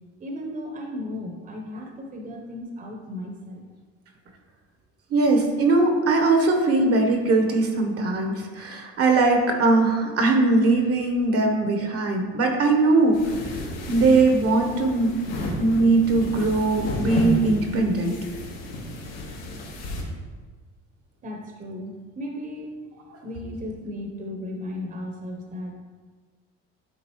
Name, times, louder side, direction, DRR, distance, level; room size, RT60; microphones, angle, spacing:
voice 1, 0.2-3.7 21.2-22.8 23.2-25.7, left 1 dB, 25° right, 1 dB, 0.9 m, -35 dB
voice 2, 5.1-13.2 13.9-15.1 15.6-18.2, right 3 dB, 45° right, 4 dB, 1.1 m, -20 dB
sound 1, 13.1-20.0, left 1 dB, 80° left, 1.6 m, -32 dB
9.1 x 3.7 x 3.1 m, 1.4 s
supercardioid pair, 90°, 32 cm